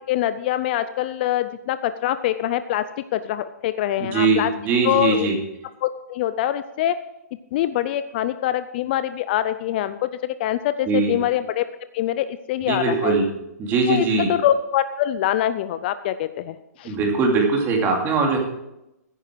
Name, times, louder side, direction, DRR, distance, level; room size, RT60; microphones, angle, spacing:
voice 1, 0.1-2.8 3.1-4.5 4.8-5.3 5.8-6.9 7.5-11.7 11.9-13.1 13.9-16.9, left 12 dB, 35° left, 12 dB, 0.5 m, -24 dB
voice 2, 4.1-5.4 10.8-11.2 12.7-13.3 13.6-14.3 16.8-18.4, right 4 dB, 20° right, 1 dB, 2.7 m, -21 dB
14.5 x 10.0 x 4.5 m, 0.89 s
hypercardioid pair, 155°, 9 cm